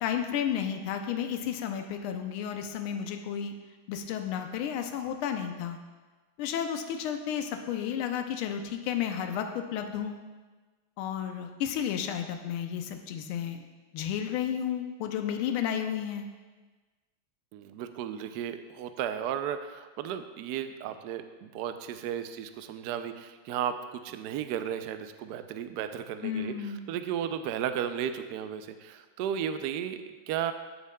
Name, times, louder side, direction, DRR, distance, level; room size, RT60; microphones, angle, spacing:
voice 1, 0.0-3.5 3.9-5.8 6.4-10.2 11.0-13.6 13.9-16.3 26.2-26.9, left 9 dB, 85° left, 6 dB, 1.5 m, -32 dB
voice 2, 17.5-30.5, right 9 dB, 90° right, 9 dB, 0.8 m, -34 dB
13.5 x 7.0 x 2.2 m, 1.3 s
omnidirectional pair, 2.3 m